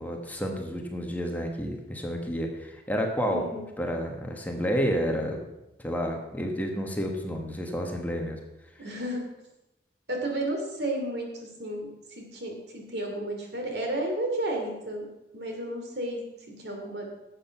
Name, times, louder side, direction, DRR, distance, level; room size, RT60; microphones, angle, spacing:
voice 1, 0.0-3.4 3.8-5.4 5.8-8.4, equal, 10° left, 2 dB, 1.3 m, -30 dB
voice 2, 3.3-3.6 8.8-9.2 10.1-16.2 16.6-17.1, right 1 dB, 70° right, 2 dB, 2.7 m, -32 dB
11.5 x 7.8 x 5.7 m, 0.93 s
head